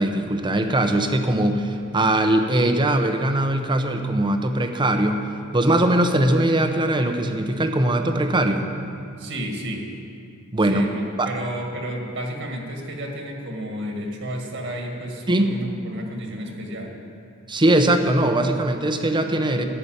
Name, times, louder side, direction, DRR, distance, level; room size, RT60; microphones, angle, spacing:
voice 1, 0.0-5.3 5.5-8.7 10.5-10.8 11.2-11.3 15.3-15.6 17.5-19.6, right 1 dB, 20° right, 6 dB, 0.8 m, -21 dB
voice 2, 9.2-9.9 10.7-16.9, equal, 60° right, 1 dB, 1.8 m, -32 dB
12.5 x 7.0 x 8.7 m, 2.4 s
head